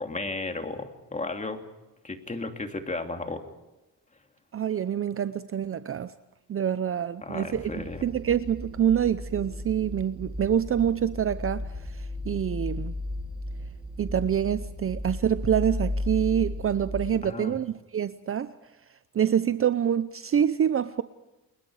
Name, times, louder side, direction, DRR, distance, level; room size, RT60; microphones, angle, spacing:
voice 1, 0.0-1.7 2.0-3.4 7.2-8.0 17.2-17.6, left 3 dB, 20° left, 2.9 m, -34 dB
voice 2, 4.5-6.1 6.5-12.9 14.0-18.5 19.1-21.0, right 9 dB, 35° right, 0.7 m, -26 dB
sound 1, 7.5-17.1, left 1 dB, 15° right, 5.0 m, -35 dB
29.5 x 21.5 x 4.9 m
cardioid pair, 115°, 37 cm